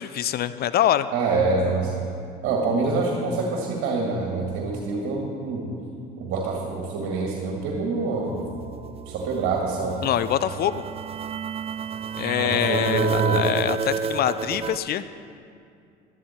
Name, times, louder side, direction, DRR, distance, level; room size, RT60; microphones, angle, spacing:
voice 1, 0.0-1.1 10.0-10.8 12.2-15.0, left 11 dB, 50° left, 14 dB, 0.5 m, -24 dB
voice 2, 1.1-2.1 2.4-5.7 6.2-8.4 9.1-10.1 12.4-13.4, right 3 dB, 65° right, -1 dB, 1.9 m, -26 dB
sound 1, 8.3-14.8, right 7 dB, 30° right, 0.5 m, -30 dB
12.0 x 11.5 x 4.4 m, 2.4 s
supercardioid pair, 80°, 21 cm